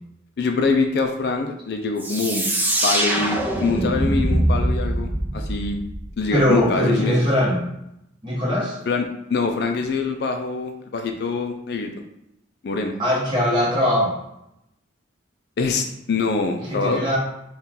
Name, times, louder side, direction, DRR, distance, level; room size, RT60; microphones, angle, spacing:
voice 1, 0.4-2.5 2.8-5.8 6.2-7.3 8.9-11.9 12.6-12.9 15.6-17.1, left 4 dB, 55° left, 5 dB, 0.4 m, -24 dB
sound 1, 2.0-6.6, right 1 dB, 10° right, 0.4 m, -23 dB
voice 2, 6.3-7.6 8.2-8.8 13.0-14.1 16.7-17.2, equal, 25° right, -6 dB, 1.3 m, -20 dB
4.2 x 2.4 x 3.7 m, 0.83 s
head